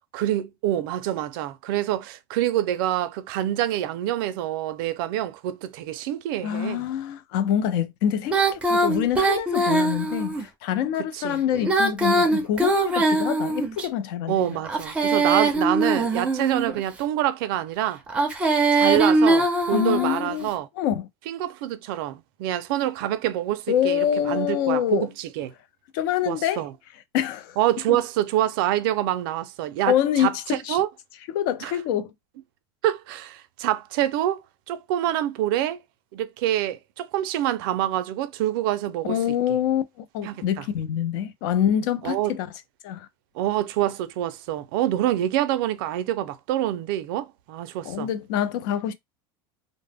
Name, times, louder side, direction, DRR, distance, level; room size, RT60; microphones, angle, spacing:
voice 1, 0.1-6.9 11.1-11.4 14.3-18.0 18.7-20.7 21.3-25.5 26.3-26.7 27.6-30.9 31.6-31.7 32.8-35.8 36.1-39.2 39.5-39.6 40.2-40.6 42.0-42.3 43.4-48.1, right 13 dB, 70° right, 0.4 m, -26 dB
voice 2, 6.4-14.6 19.7-20.5 20.8-21.1 23.7-25.1 25.9-26.7 27.1-27.6 27.9-28.0 29.9-30.8 31.3-32.1 39.1-42.5 42.8-43.1 47.8-48.9, left 10 dB, 65° left, 0.4 m, -25 dB
Female singing, 8.3-10.4 11.5-13.9 14.6-16.8 18.1-20.3, right 2 dB, 10° right, 0.4 m, -22 dB
2.0 x 2.0 x 3.3 m
cardioid pair, 165°, 12 cm